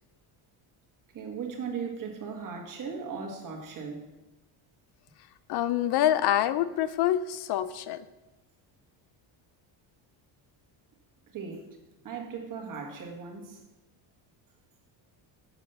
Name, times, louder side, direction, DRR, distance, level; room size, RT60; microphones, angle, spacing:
voice 1, 1.1-4.0 11.3-11.8 12.0-13.6, right 5 dB, 45° right, 2 dB, 1.7 m, -37 dB
voice 2, 5.5-8.0, left 11 dB, 55° left, 14 dB, 0.5 m, -26 dB
7.5 x 4.9 x 6.8 m, 1.0 s
cardioid pair, 130°, 47 cm